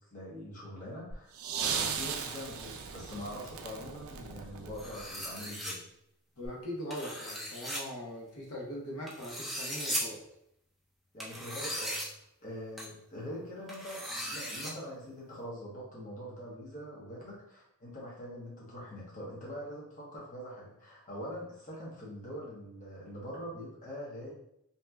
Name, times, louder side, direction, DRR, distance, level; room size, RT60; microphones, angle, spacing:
voice 1, 0.1-5.8 11.1-24.3, equal, 35° left, -5 dB, 0.8 m, -43 dB
sound 1, 1.1-5.3 6.4-6.5, right 6 dB, 65° right, 0.4 m, -37 dB
sound 2, 4.8-5.7 6.9-7.8 9.1-10.0 11.2-12.1 12.8-12.9 13.7-14.7, equal, ahead, 0.4 m, -37 dB
voice 2, 6.4-10.2, equal, 75° left, -3 dB, 0.9 m, -41 dB
2.7 x 2.2 x 3.4 m, 0.76 s
head